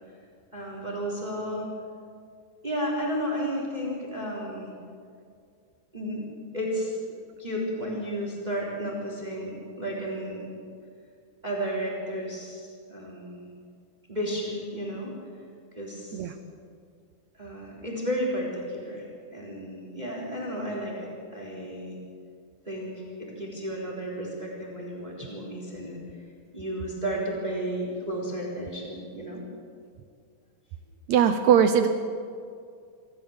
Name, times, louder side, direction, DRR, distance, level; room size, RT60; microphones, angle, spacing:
voice 1, 0.5-1.7 2.6-4.7 5.9-6.2 6.5-10.4 11.4-13.5 14.1-15.1 15.8-16.2 17.4-19.0 19.3-22.0 22.7-26.0 26.5-29.4, equal, 15° right, -3 dB, 3.7 m, -33 dB
voice 2, 31.1-31.9, right 8 dB, 75° right, 8 dB, 2.1 m, -20 dB
26.5 x 14.0 x 7.3 m, 2.3 s
omnidirectional pair, 3.5 m